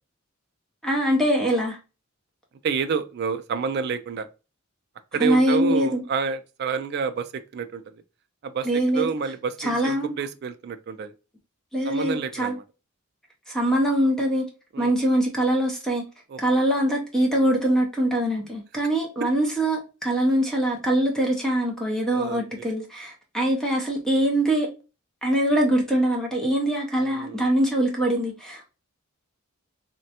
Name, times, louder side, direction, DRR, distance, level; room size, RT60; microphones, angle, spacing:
voice 1, 0.8-1.8 5.2-6.0 8.6-9.1 9.6-10.2 11.7-12.5 13.5-14.5 14.8-16.0 16.4-24.7 25.2-28.7, right 1 dB, ahead, 0.5 m, -23 dB
voice 2, 2.6-4.3 5.1-7.8 8.4-8.7 8.9-11.1 11.9-12.6 14.7-14.9 16.3-16.4 22.1-22.4 27.0-27.4, right 5 dB, 50° right, 0.3 m, -28 dB
3.3 x 2.2 x 2.7 m
head